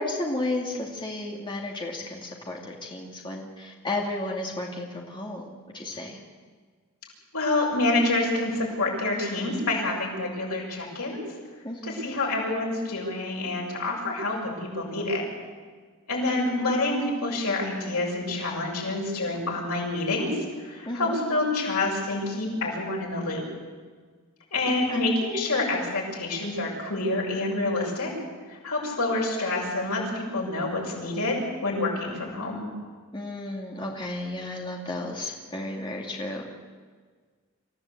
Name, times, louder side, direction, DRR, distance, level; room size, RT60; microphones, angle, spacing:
voice 1, 0.0-6.2 11.6-12.1 20.9-21.2 24.7-25.1 33.1-36.4, left 2 dB, 20° left, -1 dB, 2.4 m, -33 dB
voice 2, 7.3-11.2 11.8-15.2 16.1-23.4 24.5-28.1 28.5-32.7, left 2 dB, 90° left, -1 dB, 7.2 m, -27 dB
26.5 x 15.5 x 8.5 m, 1.6 s
head